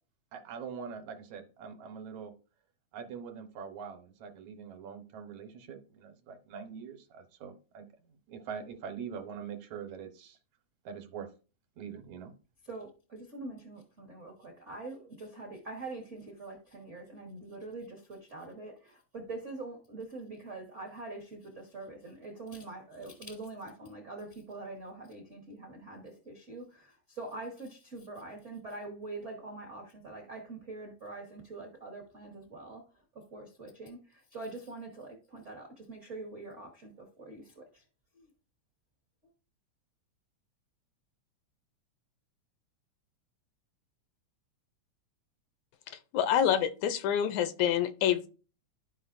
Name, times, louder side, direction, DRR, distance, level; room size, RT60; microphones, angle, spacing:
voice 1, 0.3-2.3 2.9-10.4 10.8-11.3 11.8-12.3, right 6 dB, 75° right, 6 dB, 2.2 m, -43 dB
voice 2, 12.7-32.8 33.3-37.8 38.2-38.3, right 2 dB, 55° right, 1 dB, 0.8 m, -44 dB
voice 3, 46.1-48.3, left 9 dB, 80° left, 11 dB, 1.9 m, -27 dB
12.5 x 5.1 x 2.5 m, 0.35 s
omnidirectional pair, 3.4 m